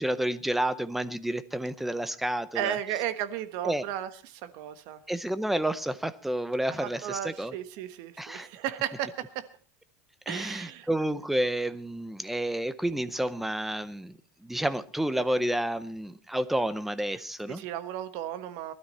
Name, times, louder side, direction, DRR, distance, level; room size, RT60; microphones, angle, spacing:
voice 1, 0.0-2.8 3.6-3.8 5.1-7.6 8.2-8.5 10.3-17.6, right 1 dB, ahead, 14 dB, 0.6 m, -30 dB
voice 2, 2.5-5.0 6.8-9.5 10.3-10.9 17.5-18.7, right 11 dB, 50° right, 11 dB, 1.3 m, -34 dB
20.0 x 12.5 x 4.2 m, 0.39 s
supercardioid pair, 165°, 8 cm